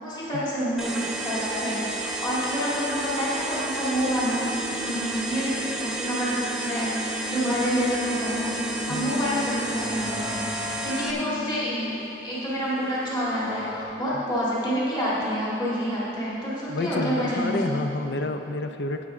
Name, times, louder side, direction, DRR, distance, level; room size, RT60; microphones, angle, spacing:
voice 1, 0.0-4.5 4.8-8.5 8.9-11.9 12.2-17.8, equal, 25° left, -8 dB, 2.1 m, -28 dB
sound 1, 0.8-11.1, right 2 dB, ahead, 0.8 m, -31 dB
sound 2, 3.9-13.9, left 3 dB, 55° left, 1.0 m, -38 dB
voice 2, 16.7-19.1, left 2 dB, 75° left, 7 dB, 0.6 m, -29 dB
12.0 x 8.3 x 3.7 m, 3.0 s
head